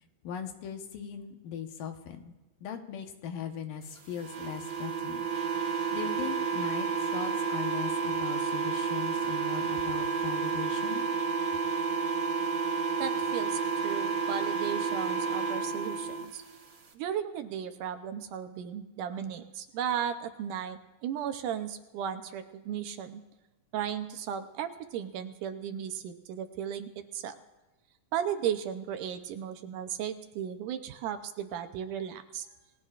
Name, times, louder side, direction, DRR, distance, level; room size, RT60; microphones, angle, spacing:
voice 1, 0.2-2.3 2.6-5.3 5.6-11.1, left 8 dB, 75° left, 5 dB, 2.8 m, -39 dB
sound 1, 4.2-16.2, right 5 dB, 50° right, 1.6 m, -31 dB
voice 2, 13.0-16.4 16.9-23.2 23.7-27.4 28.1-32.5, right 9 dB, 75° right, 7 dB, 2.2 m, -35 dB
29.0 x 18.5 x 2.5 m, 1.1 s
omnidirectional pair, 3.9 m